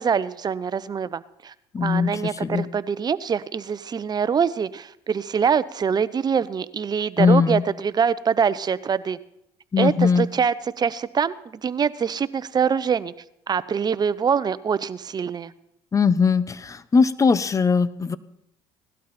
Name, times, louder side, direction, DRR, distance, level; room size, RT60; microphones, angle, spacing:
voice 1, 0.0-1.5 1.8-9.2 9.8-11.3 11.6-13.1 13.5-15.5, right 6 dB, 40° right, 16 dB, 0.8 m, -24 dB
voice 2, 1.7-2.7 7.2-7.6 9.7-10.3 15.9-18.2, left 5 dB, 30° left, 16 dB, 1.0 m, -20 dB
18.0 x 12.0 x 4.3 m, 0.79 s
supercardioid pair, 75°, 11 cm